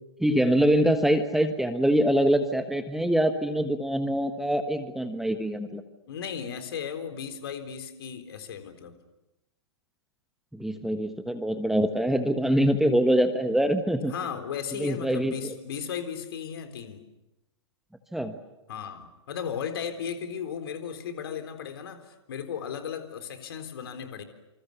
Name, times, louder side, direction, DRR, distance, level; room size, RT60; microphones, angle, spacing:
voice 1, 0.2-5.8 10.5-14.1 14.8-15.5 18.1-18.3, equal, ahead, 8 dB, 1.3 m, -24 dB
voice 2, 6.1-8.9 14.1-17.0 18.7-24.2, left 7 dB, 55° left, 8 dB, 3.9 m, -36 dB
27.5 x 27.5 x 7.1 m, 0.98 s
figure-of-eight pair, 110°, 15 cm